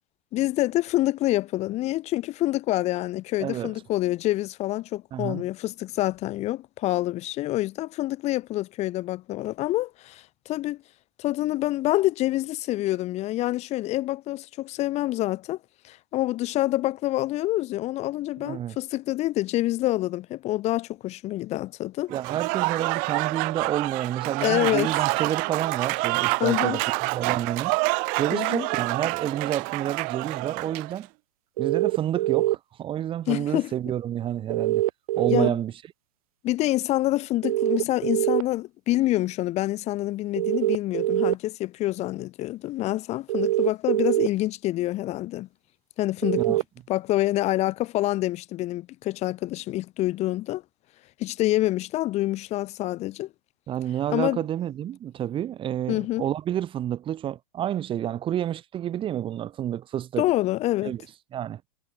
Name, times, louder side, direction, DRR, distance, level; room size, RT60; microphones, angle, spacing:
voice 1, 0.3-10.8 11.2-15.6 15.8-22.1 24.4-24.9 26.4-26.8 28.3-28.7 33.3-33.7 35.3-35.6 36.4-45.5 46.0-46.6 46.9-50.6 51.2-53.3 54.1-54.4 55.9-56.2 60.2-60.9, left 16 dB, 35° left, 1.3 m, -27 dB
voice 2, 3.4-3.7 5.1-5.4 18.4-18.8 22.1-27.8 28.2-31.1 31.6-34.8 35.1-35.7 46.4-46.6 53.7-60.3 60.8-61.0 61.3-61.6, right 11 dB, 25° right, 1.3 m, -29 dB
Applause / Crowd, 22.1-31.0, right 34 dB, 45° right, 1.0 m, -27 dB
sound 1, 31.6-32.6 34.5-35.5 37.4-38.4 40.4-41.3 43.3-44.3 46.2-46.6, right 16 dB, 65° right, 1.5 m, -23 dB
hypercardioid pair, 120°, 20 cm